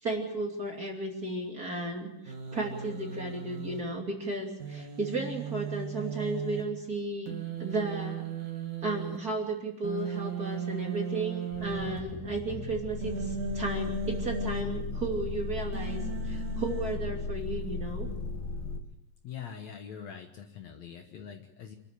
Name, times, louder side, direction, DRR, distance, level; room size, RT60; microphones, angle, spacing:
voice 1, 0.0-7.3 7.6-8.3 8.8-18.1, right 2 dB, 30° right, 1 dB, 2.9 m, -34 dB
Human voice, 2.3-3.8 4.6-6.6 7.3-9.2 9.8-12.0 13.0-14.6 15.7-17.0, right 6 dB, 60° right, 4.2 m, -36 dB
sound 1, 11.5-18.8, left 3 dB, 80° left, 3.2 m, -36 dB
voice 2, 19.2-21.8, left 7 dB, 60° left, 5 dB, 2.2 m, -44 dB
27.0 x 13.0 x 8.3 m, 0.83 s
omnidirectional pair, 4.0 m